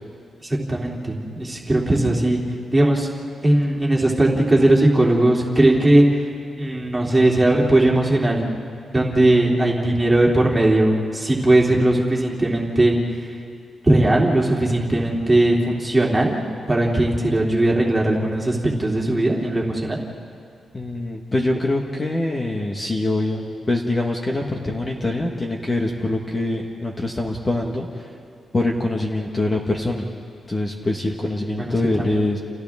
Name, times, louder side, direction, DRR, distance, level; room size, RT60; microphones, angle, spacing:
voice 1, 0.7-2.4 2.7-3.1 3.4-6.0 6.6-8.4 8.9-13.0 13.8-16.4 16.7-20.0 31.6-32.0, right 1 dB, 15° right, -3 dB, 2.8 m, -18 dB
voice 2, 20.7-27.9 28.5-30.1 30.5-32.4, left 2 dB, 25° left, 0 dB, 1.5 m, -24 dB
30.0 x 30.0 x 3.6 m, 2.3 s
wide cardioid pair, 160°, 0 cm